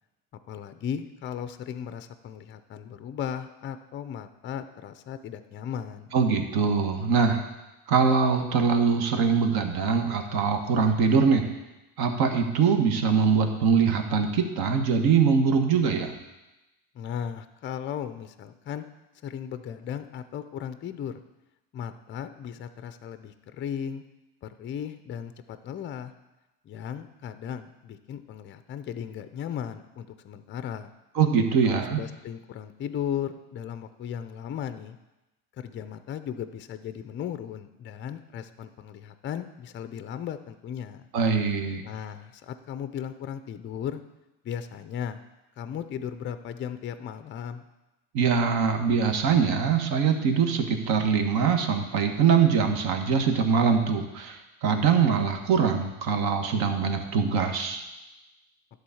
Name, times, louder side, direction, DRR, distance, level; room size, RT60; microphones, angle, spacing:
voice 1, 0.5-6.1 16.9-18.8 19.2-21.2 21.7-24.0 24.4-26.1 26.6-30.9 31.6-35.0 35.6-41.0 41.8-44.0 44.4-45.2 45.6-47.6, left 9 dB, 25° left, 11 dB, 0.5 m, -36 dB
voice 2, 6.1-7.4 7.9-11.5 12.0-16.2 31.1-32.0 41.1-41.8 48.1-57.8, right 6 dB, 55° right, 5 dB, 1.4 m, -23 dB
11.0 x 4.0 x 7.1 m, 1.0 s
supercardioid pair, 120°, 45 cm